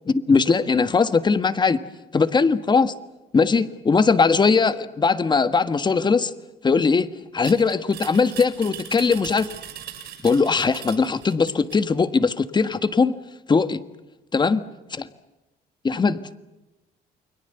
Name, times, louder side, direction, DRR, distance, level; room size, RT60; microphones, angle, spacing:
voice 1, 0.1-1.8 2.1-2.9 3.3-6.3 6.6-7.1 7.3-9.5 10.2-13.1 13.5-13.8 14.3-14.6 15.8-16.2, left 4 dB, 25° left, 12 dB, 1.6 m, -20 dB
sound 1, 7.4-11.8, right 10 dB, 75° right, 7.6 m, -39 dB
29.5 x 22.0 x 8.0 m, 1.0 s
cardioid pair, 110°, 17 cm